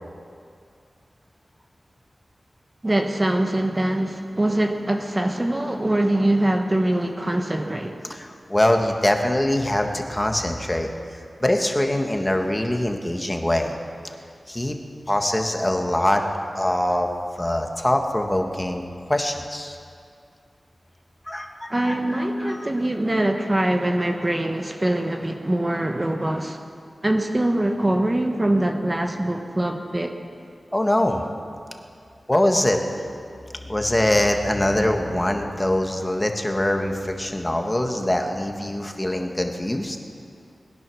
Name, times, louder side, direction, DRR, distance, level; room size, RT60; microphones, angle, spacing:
voice 1, 2.8-8.0 21.7-26.6 27.0-30.1, right 1 dB, 25° right, 4 dB, 1.2 m, -23 dB
voice 2, 8.1-13.7 14.5-14.8 15.1-16.2 16.5-17.1 17.4-19.8 21.2-22.7 30.7-31.2 32.3-32.8 33.4-40.0, left 1 dB, 15° left, 4 dB, 1.6 m, -23 dB
20.5 x 10.5 x 6.3 m, 2.3 s
wide cardioid pair, 65°, 0 cm